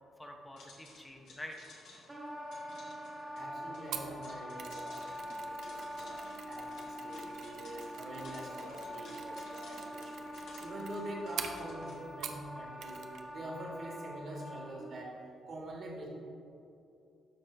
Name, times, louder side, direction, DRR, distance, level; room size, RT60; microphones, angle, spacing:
voice 1, 0.2-1.6 5.7-6.2, left 1 dB, 15° left, 2 dB, 0.8 m, -48 dB
sound 1, 0.6-12.0, left 2 dB, 75° left, 1.5 m, -56 dB
Wind instrument woodwind instrument, 2.1-15.0, equal, 15° right, 1.3 m, -44 dB
voice 2, 3.3-6.2 6.5-15.2 15.5-16.1, right 1 dB, 55° right, -2 dB, 1.7 m, -45 dB
Mechanisms, 3.9-12.5 12.8-13.3 13.5-13.7, right 7 dB, 75° right, 0.6 m, -47 dB
12.0 x 4.4 x 3.3 m, 2.7 s
cardioid pair, 90°, 0 cm